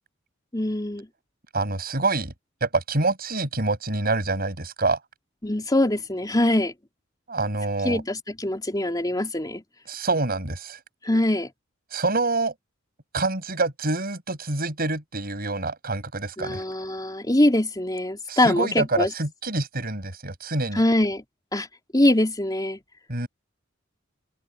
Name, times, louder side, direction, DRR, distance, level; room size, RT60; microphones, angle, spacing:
voice 1, 0.5-1.1 5.4-6.7 7.8-9.6 11.0-11.5 16.4-19.1 20.7-21.2 21.5-21.7 21.9-22.8, left 1 dB, 20° left, 3.7 m, -23 dB
voice 2, 1.5-2.3 2.6-5.0 7.3-8.0 9.9-10.8 11.9-12.5 13.1-16.6 18.3-20.8 23.1-23.3, right 3 dB, 50° right, 7.3 m, -26 dB
open air
head